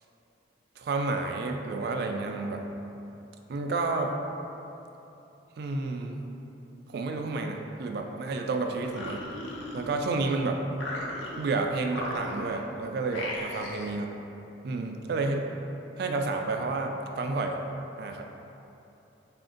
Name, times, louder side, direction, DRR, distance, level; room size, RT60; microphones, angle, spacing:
voice 1, 0.8-2.6 3.5-4.1 5.6-6.2 6.9-9.2 9.7-10.6 11.4-14.1 14.6-15.4 16.0-17.6 18.0-18.2, right 3 dB, 55° right, 3 dB, 0.3 m, -30 dB
sound 1, 8.7-10.3 10.7-11.5 11.9-12.7 13.1-14.0, left 1 dB, 80° left, 0.6 m, -37 dB
4.2 x 2.5 x 3.8 m, 2.9 s
head